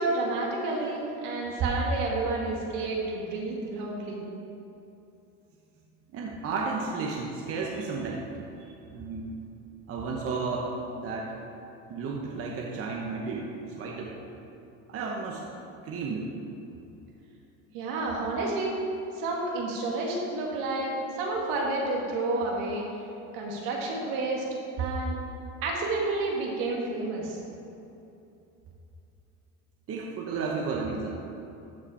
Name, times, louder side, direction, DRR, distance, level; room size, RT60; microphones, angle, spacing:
voice 1, 0.0-4.2 17.7-18.8 19.1-22.9 23.3-24.4 24.8-25.2 25.6-27.4, right 2 dB, 75° right, -2 dB, 2.1 m, -30 dB
voice 2, 6.1-8.2 8.6-8.7 8.9-9.3 9.9-11.4 11.9-13.5 13.8-14.1 14.9-15.4 15.8-16.3 29.9-31.1, right 4 dB, 40° right, -1 dB, 1.1 m, -33 dB
14.0 x 4.9 x 4.4 m, 2.8 s
cardioid pair, 125°, 34 cm